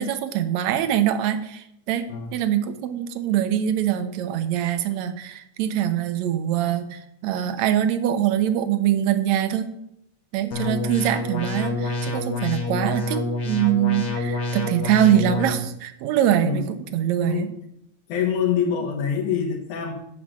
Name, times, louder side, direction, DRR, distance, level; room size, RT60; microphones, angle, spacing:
voice 1, 0.0-2.1 2.3-9.7 10.3-17.5, right 10 dB, 75° right, 9 dB, 2.1 m, -23 dB
sound 1, 10.5-15.5, left 2 dB, 35° left, 1.7 m, -28 dB
voice 2, 17.2-17.5 18.1-19.9, left 7 dB, 85° left, 1 dB, 2.6 m, -25 dB
9.5 x 5.0 x 7.3 m, 0.77 s
omnidirectional pair, 3.3 m